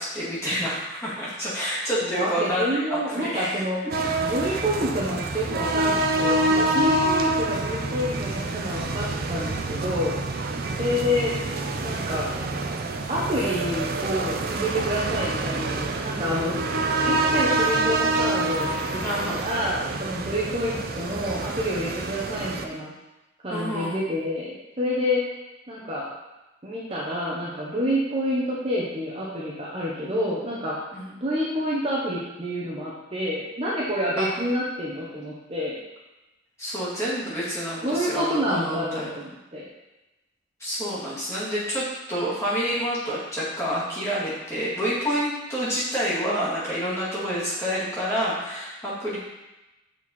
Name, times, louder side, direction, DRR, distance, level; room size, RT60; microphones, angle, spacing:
voice 1, 0.0-3.5 4.4-4.6 10.6-11.0 19.0-19.4 23.5-24.0 30.9-31.1 34.2-34.3 36.6-39.2 40.6-49.2, equal, 15° left, -9 dB, 2.2 m, -28 dB
voice 2, 2.0-3.8 4.2-10.1 10.8-12.3 13.1-16.6 17.0-19.0 19.3-22.9 23.4-25.2 25.7-26.1 26.6-30.8 31.2-35.8 37.8-39.6, equal, 30° right, -7 dB, 1.1 m, -28 dB
sound 1, 3.9-22.7, right 2 dB, 50° right, 0.5 m, -26 dB
6.4 x 4.6 x 4.3 m, 1.0 s
head